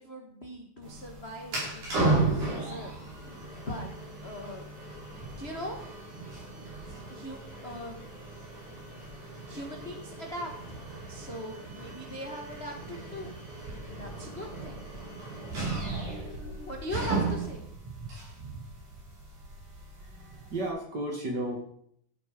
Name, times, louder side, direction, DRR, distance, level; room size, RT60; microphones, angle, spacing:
voice 1, 0.0-2.0 2.4-2.9 3.5-3.9 4.2-4.6 5.4-5.8 7.1-8.0 9.4-10.8 11.1-13.3 13.9-14.8 16.6-17.6, equal, 50° left, 1 dB, 0.7 m, -40 dB
sound 1, 0.8-20.7, right 3 dB, 60° right, 6.9 m, -35 dB
voice 2, 19.9-21.6, right 1 dB, 35° right, 1 dB, 2.2 m, -34 dB
13.5 x 9.2 x 5.1 m, 0.66 s
omnidirectional pair, 4.0 m